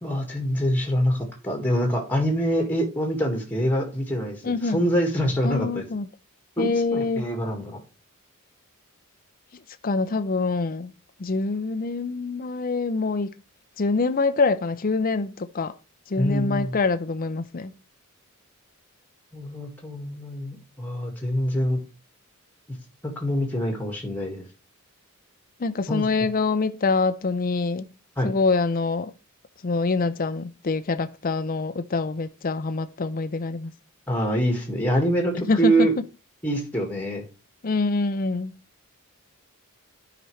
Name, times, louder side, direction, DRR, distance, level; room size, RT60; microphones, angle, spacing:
voice 1, 0.0-5.9 6.6-7.8 16.2-16.7 19.3-21.8 23.0-24.5 25.9-26.1 28.2-28.3 34.1-35.9 36.4-37.2, equal, 10° left, 1.8 m, -25 dB
voice 2, 4.4-4.8 5.4-6.1 6.6-7.2 9.8-10.9 11.2-13.3 13.8-15.7 16.1-17.7 25.6-27.9 28.2-29.1 29.6-33.7 35.3-35.9 37.6-38.5, left 3 dB, 40° left, 0.5 m, -25 dB
12.0 x 5.0 x 3.2 m
head